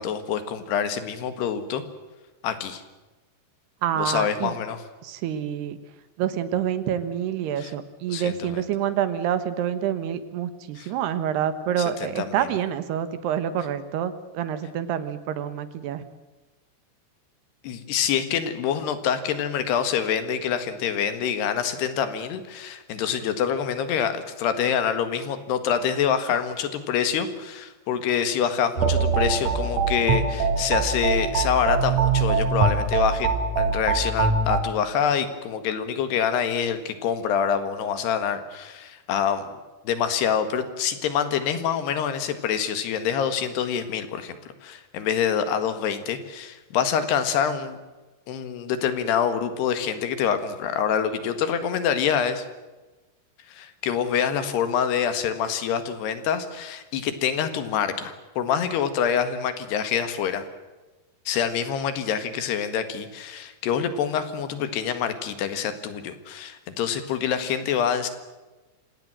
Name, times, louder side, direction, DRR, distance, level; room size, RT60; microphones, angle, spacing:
voice 1, 0.0-1.8 2.4-2.8 4.0-4.8 7.6-7.7 8.1-8.6 10.8-10.9 11.8-12.5 17.6-39.5 39.9-47.8 48.3-52.5 53.5-60.4 61.3-68.1, left 8 dB, 75° left, 10 dB, 3.7 m, -26 dB
voice 2, 3.8-4.5 5.0-5.8 6.2-16.0, right 9 dB, 75° right, 12 dB, 3.3 m, -27 dB
sound 1, 28.8-34.6, right 4 dB, 50° right, 4.3 m, -23 dB
27.0 x 17.5 x 7.7 m, 1.2 s
omnidirectional pair, 4.9 m